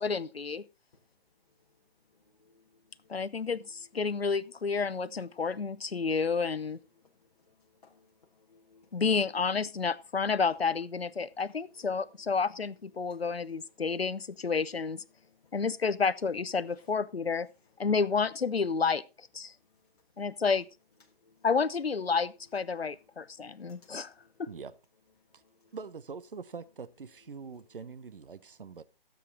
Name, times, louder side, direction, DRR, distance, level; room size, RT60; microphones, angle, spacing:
voice 1, 0.0-0.6 3.1-6.8 8.9-15.0 15.5-17.5 17.8-19.5 20.2-20.6 21.4-24.1 24.4-24.5, left 5 dB, 75° left, 0.8 m, -30 dB
voice 2, 0.9-4.1 5.2-5.6 6.7-9.1 11.2-12.5 12.9-14.5 15.1-15.6 16.7-16.9 19.5-20.4 21.0-21.5 22.7-24.6 25.2-25.8 27.4-27.8, left 4 dB, 40° left, 1.5 m, -66 dB
voice 3, 25.7-28.8, right 5 dB, 60° right, 0.9 m, -44 dB
14.0 x 7.6 x 3.9 m
figure-of-eight pair, 145°, 30 cm